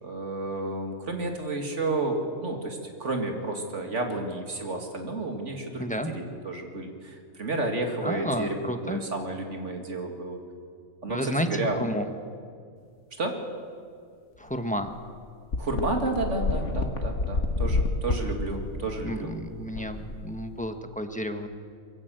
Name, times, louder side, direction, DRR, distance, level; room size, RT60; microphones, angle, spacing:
voice 1, 0.0-10.4 11.0-11.9 13.2-13.4 15.6-19.3, right 2 dB, 60° right, 3 dB, 2.5 m, -31 dB
voice 2, 5.8-6.1 8.0-9.0 11.1-12.0 14.4-14.9 19.0-21.5, equal, 5° left, 6 dB, 1.0 m, -31 dB
sound 1, 14.5-14.6 14.9-15.0 15.5-20.7, left 2 dB, 60° left, 1.8 m, -29 dB
22.5 x 16.0 x 7.8 m, 2.2 s
omnidirectional pair, 1.4 m